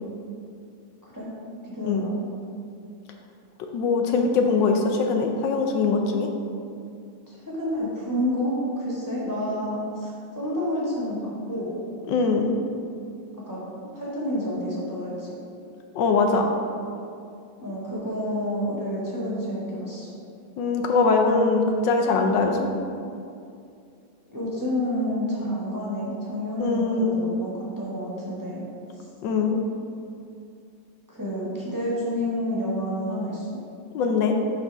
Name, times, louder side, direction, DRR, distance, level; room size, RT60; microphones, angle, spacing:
voice 1, 1.6-2.1 7.3-11.7 13.5-13.6 13.9-15.3 17.6-20.1 24.3-28.6 28.9-29.1 31.1-33.6, equal, 10° right, -8 dB, 1.4 m, -29 dB
voice 2, 3.7-6.3 12.1-12.5 15.9-16.5 20.6-22.7 26.6-27.2 29.2-29.6 33.9-34.3, left 4 dB, 85° left, 3 dB, 1.4 m, -22 dB
10.5 x 4.2 x 3.5 m, 2.4 s
omnidirectional pair, 1.9 m